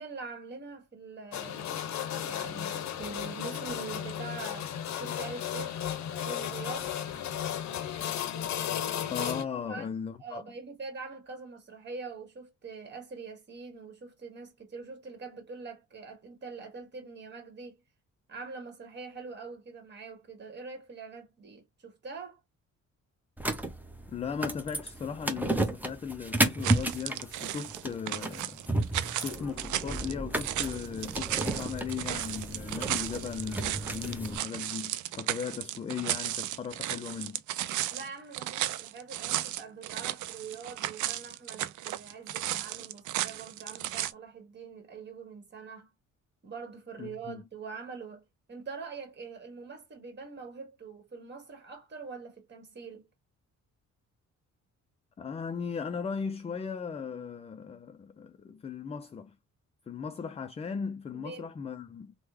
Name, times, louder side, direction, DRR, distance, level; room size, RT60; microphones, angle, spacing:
voice 1, 0.0-5.8 6.2-7.0 9.1-9.3 9.7-9.9 10.2-17.8 18.3-22.4 37.9-45.9 46.4-53.1 61.1-61.5, right 4 dB, 35° right, 1.5 m, -44 dB
sound 1, 1.3-9.4, left 10 dB, 65° left, 0.6 m, -34 dB
voice 2, 9.1-10.4 24.1-28.6 29.2-37.4 47.0-47.4 55.2-59.4 59.9-62.1, left 6 dB, 20° left, 0.3 m, -37 dB
sound 2, 23.4-34.4, right 1 dB, 5° right, 0.8 m, -33 dB
sound 3, 26.6-44.1, right 13 dB, 75° right, 0.5 m, -35 dB
3.2 x 2.2 x 3.2 m
cardioid pair, 90°, 30 cm